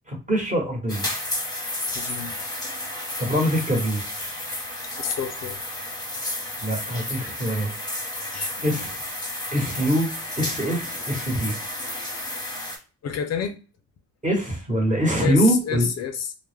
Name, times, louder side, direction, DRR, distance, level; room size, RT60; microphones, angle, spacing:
voice 1, 0.1-1.1 3.2-4.0 6.6-7.7 8.6-9.0 9.5-10.1 10.4-11.5 14.2-15.9, equal, 25° right, -1 dB, 1.1 m, -23 dB
sound 1, 0.9-12.8, left 1 dB, 15° left, 0.8 m, -32 dB
voice 2, 1.9-2.4 5.0-5.6 8.3-8.9 13.0-13.6 15.2-16.3, left 7 dB, 60° left, 7 dB, 0.4 m, -29 dB
2.1 x 2.0 x 3.2 m, 0.35 s
cardioid pair, 90°, 30 cm